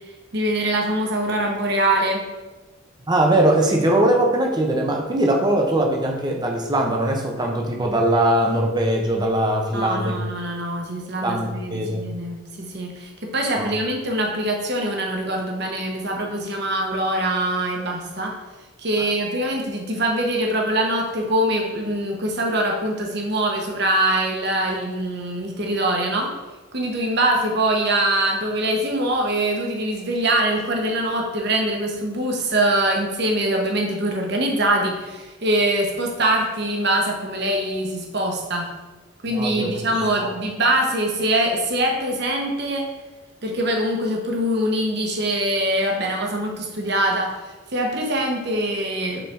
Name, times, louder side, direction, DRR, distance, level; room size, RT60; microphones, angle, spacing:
voice 1, 0.3-2.2 9.7-18.3 18.8-26.3 26.7-38.7 39.2-42.9 43.4-47.3 47.7-49.2, right 1 dB, 50° right, 1 dB, 1.1 m, -23 dB
voice 2, 3.1-10.2 11.2-12.0 13.6-13.7 39.3-39.7 40.2-40.3, right 1 dB, 20° right, 1 dB, 0.7 m, -21 dB
5.6 x 4.2 x 4.4 m, 1.2 s
head